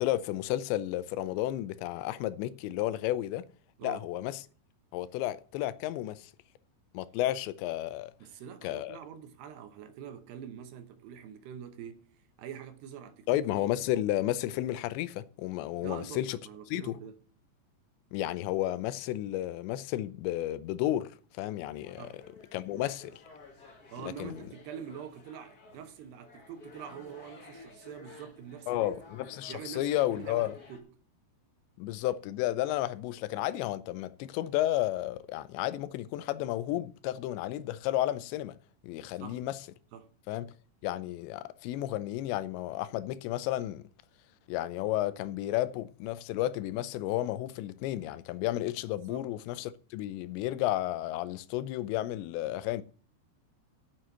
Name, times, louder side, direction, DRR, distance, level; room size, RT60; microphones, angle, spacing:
voice 1, 0.0-3.5 3.8-4.4 4.9-6.3 6.9-8.1 8.6-9.0 13.3-16.4 16.7-17.0 18.1-22.1 22.5-23.2 24.2-24.3 28.7-30.5 31.8-38.5 38.8-39.6 40.3-40.5 40.8-43.8 44.5-52.8, left 14 dB, 85° left, 2.9 m, -32 dB
voice 2, 8.2-13.4 15.8-17.1 22.0-22.2 23.9-28.9 29.5-30.9 39.1-39.4 39.9-40.1 49.0-49.3, right 8 dB, 75° right, 2.9 m, -45 dB
sound 1, 21.7-30.8, left 3 dB, 40° left, 1.4 m, -53 dB
9.0 x 7.7 x 8.1 m
omnidirectional pair, 5.2 m